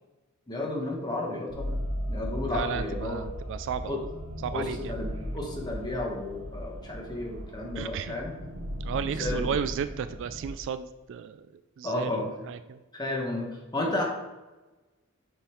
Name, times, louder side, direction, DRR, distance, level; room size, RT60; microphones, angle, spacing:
voice 1, 0.5-1.7 2.1-3.2 3.9-4.0 4.5-8.3 9.2-9.6 11.8-12.3 12.9-14.0, left 2 dB, 20° left, -1 dB, 1.2 m, -32 dB
sound 1, 1.5-10.5, equal, 80° right, 1.0 m, -36 dB
voice 2, 2.5-4.0 4.4-4.9 7.8-8.2 8.8-11.5 11.8-12.1 12.5-12.8, right 7 dB, 60° right, 11 dB, 0.3 m, -33 dB
6.8 x 3.7 x 4.5 m, 1.1 s
head